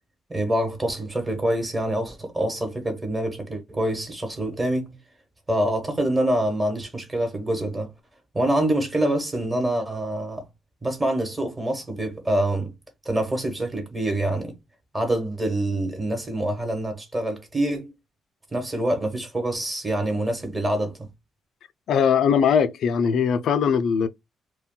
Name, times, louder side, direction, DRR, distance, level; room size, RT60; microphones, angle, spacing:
voice 1, 0.3-5.0 5.5-7.9 8.3-10.4 10.8-12.7 13.0-14.5 14.9-17.9 18.5-21.1, right 1 dB, 20° right, 1.1 m, -26 dB
voice 2, 21.9-24.1, left 7 dB, 70° left, 0.3 m, -20 dB
2.2 x 2.1 x 3.7 m
cardioid pair, 90°, 0 cm